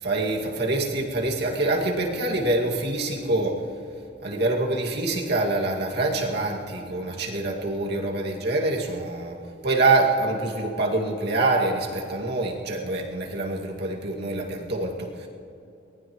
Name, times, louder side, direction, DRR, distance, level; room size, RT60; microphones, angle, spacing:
voice 1, 0.0-3.6 4.2-9.4 9.6-15.3, right 2 dB, 65° right, -1 dB, 2.3 m, -25 dB
23.5 x 19.5 x 3.1 m, 2.9 s
head